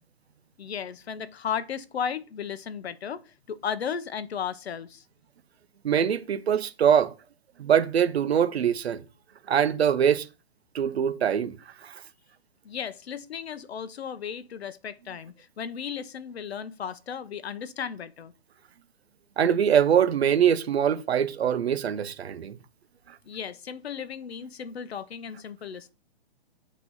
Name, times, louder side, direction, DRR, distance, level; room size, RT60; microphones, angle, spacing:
voice 1, 0.6-3.2 3.5-5.0 12.6-18.3 23.3-25.9, left 7 dB, 75° left, 0.9 m, -35 dB
voice 2, 5.8-7.1 7.6-9.0 9.5-10.3 10.7-11.6 11.8-11.9 19.4-22.6, right 8 dB, 75° right, 0.9 m, -23 dB
8.3 x 3.0 x 5.5 m
hypercardioid pair, 180°, 32 cm